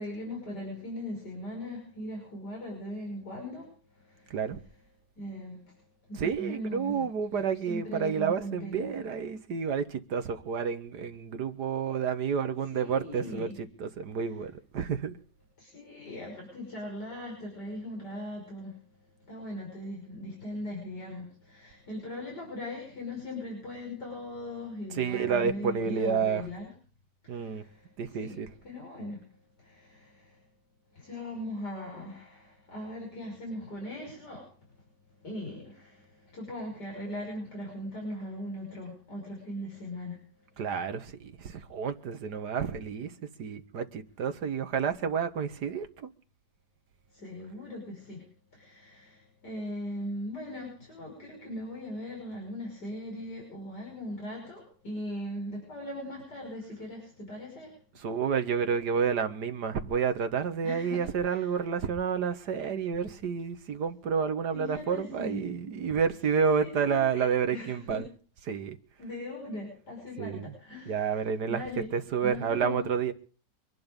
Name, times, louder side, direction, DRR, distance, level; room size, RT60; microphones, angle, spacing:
voice 1, 0.0-4.4 5.2-5.7 6.1-7.1 7.7-8.9 12.7-13.5 15.6-18.8 19.2-26.6 27.2-28.4 28.6-29.3 29.6-30.4 30.9-34.5 35.2-40.2 47.1-48.2 48.5-57.8 60.6-61.4 64.5-65.4 66.5-68.0 69.0-71.9 72.2-72.9, left 1 dB, 65° left, 6.6 m, -39 dB
voice 2, 4.3-4.6 6.1-15.2 24.9-26.5 27.3-27.6 28.0-28.5 40.6-43.1 43.4-46.1 58.0-68.1 68.5-68.8 70.2-70.5 70.9-71.6 71.9-73.1, right 6 dB, 65° right, 1.9 m, -30 dB
24.0 x 10.5 x 5.3 m
omnidirectional pair, 1.9 m